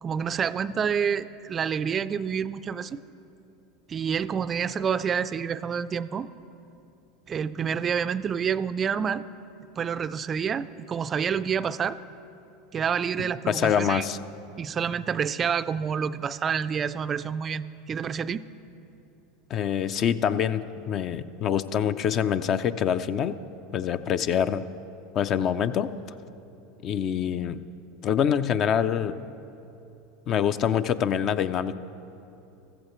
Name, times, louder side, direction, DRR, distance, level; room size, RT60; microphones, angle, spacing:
voice 1, 0.0-3.0 3.9-6.3 7.3-9.2 9.8-12.0 12.7-14.1 14.6-18.4, right 7 dB, 30° right, 15 dB, 0.3 m, -28 dB
voice 2, 13.5-14.2 19.5-23.4 23.7-24.6 25.1-25.9 26.8-27.6 28.0-29.2 30.3-31.8, left 8 dB, 45° left, 13 dB, 0.4 m, -25 dB
15.0 x 14.5 x 3.1 m, 2.8 s
hypercardioid pair, 95°, 0 cm